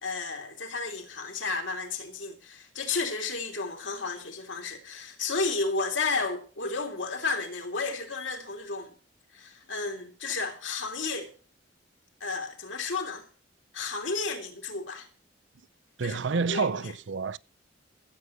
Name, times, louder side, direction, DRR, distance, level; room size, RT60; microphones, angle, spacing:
voice 1, 0.0-8.9 9.3-11.3 12.2-13.3 13.7-15.1 16.0-16.2 16.5-16.7, left 4 dB, 80° left, 3.1 m, -32 dB
voice 2, 16.0-17.4, right 5 dB, 70° right, 0.6 m, -29 dB
15.0 x 8.1 x 6.7 m
head